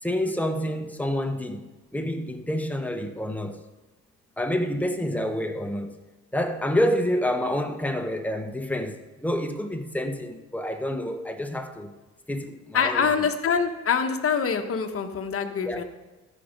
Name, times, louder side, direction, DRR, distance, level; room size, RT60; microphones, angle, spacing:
voice 1, 0.0-1.6 1.9-3.6 4.4-5.9 6.3-11.9 12.3-13.1 15.6-15.8, left 1 dB, 5° left, 5 dB, 1.1 m, -28 dB
voice 2, 12.7-15.8, left 6 dB, 50° left, 6 dB, 1.1 m, -25 dB
13.5 x 5.4 x 5.2 m, 1.1 s
cardioid pair, 90°, 30 cm